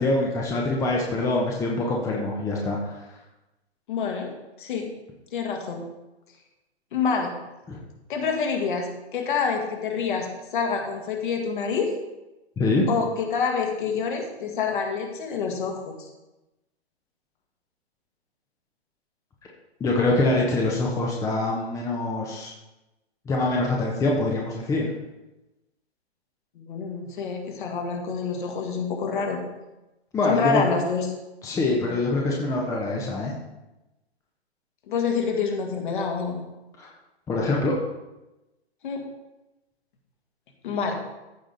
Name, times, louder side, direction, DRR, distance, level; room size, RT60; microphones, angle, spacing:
voice 1, 0.0-3.0 7.7-7.8 12.6-12.8 19.8-22.5 23.3-24.9 30.1-30.6 31.4-33.3 36.8-36.9 37.3-37.7, left 2 dB, 10° left, -2 dB, 0.9 m, -24 dB
voice 2, 3.9-4.3 4.6-4.9 5.3-5.9 6.9-7.3 8.1-10.3 10.5-11.9 12.9-16.1 26.6-29.4 30.3-31.1 31.8-31.9 34.9-36.4 38.8-39.1 40.6-41.0, left 5 dB, 50° left, 2 dB, 1.9 m, -27 dB
14.5 x 5.0 x 4.0 m, 1.0 s
figure-of-eight pair, 125°, 33 cm